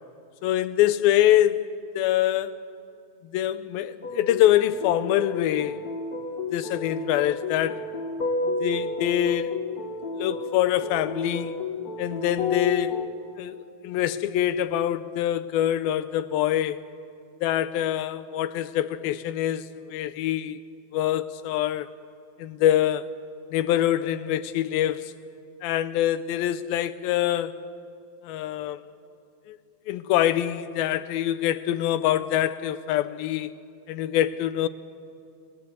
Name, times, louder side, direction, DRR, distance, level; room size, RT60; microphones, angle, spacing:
voice 1, 0.4-1.7 1.9-2.6 3.2-5.8 6.5-7.9 8.6-9.6 10.2-11.6 12.0-13.0 13.4-13.6 13.8-16.9 17.4-20.6 20.9-21.9 22.4-23.1 23.5-25.2 25.6-27.6 28.2-28.8 29.5-29.6 29.9-33.5 33.9-34.7, left 12 dB, 80° left, 2.5 m, -25 dB
sound 1, 4.0-13.0, left 3 dB, 40° left, 1.3 m, -31 dB
30.0 x 19.0 x 7.9 m
omnidirectional pair, 4.4 m